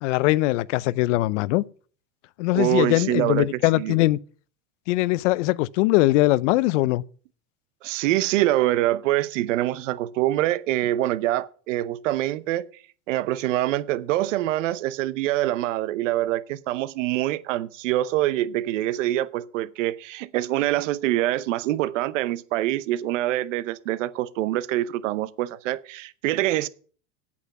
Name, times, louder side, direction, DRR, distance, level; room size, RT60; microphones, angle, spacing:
voice 1, 0.0-1.6 2.4-4.2 4.9-7.0, left 18 dB, 70° left, 0.6 m, -21 dB
voice 2, 2.5-3.5 3.7-4.0 7.8-12.7 13.1-26.7, right 15 dB, 80° right, 0.9 m, -25 dB
8.6 x 7.9 x 7.1 m
supercardioid pair, 120°, 37 cm